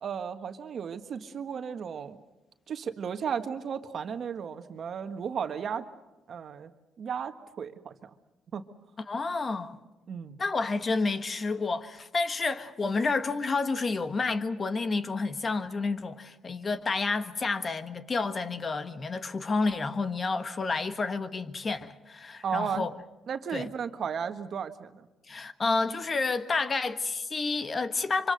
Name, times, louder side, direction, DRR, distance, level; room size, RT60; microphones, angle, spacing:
voice 1, 0.0-2.2 2.7-5.9 6.3-6.7 7.0-8.1 8.5-8.6 10.1-10.4 22.4-22.9 23.3-25.1, right 7 dB, 55° right, 1.5 m, -34 dB
voice 2, 9.1-9.8 10.4-22.9 23.5-23.7 25.3-28.3, left 3 dB, 35° left, 1.4 m, -30 dB
25.0 x 25.0 x 6.5 m
cardioid pair, 90°, 0 cm